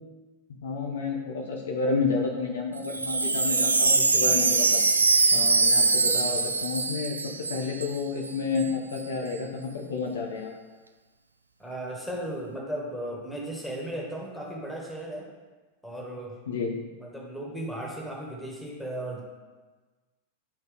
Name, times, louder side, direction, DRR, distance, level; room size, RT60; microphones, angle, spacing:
voice 1, 0.6-4.8 5.3-10.5 16.5-16.7, left 4 dB, 65° left, 1 dB, 0.9 m, -30 dB
Wind chime, 2.8-8.3 8.6-9.0, right 3 dB, 80° right, 0.4 m, -23 dB
voice 2, 11.6-15.3 15.8-16.4 17.0-19.2, right 1 dB, 5° left, -3 dB, 1.8 m, -36 dB
10.0 x 4.0 x 3.6 m, 1.3 s
figure-of-eight pair, 90°, 0 cm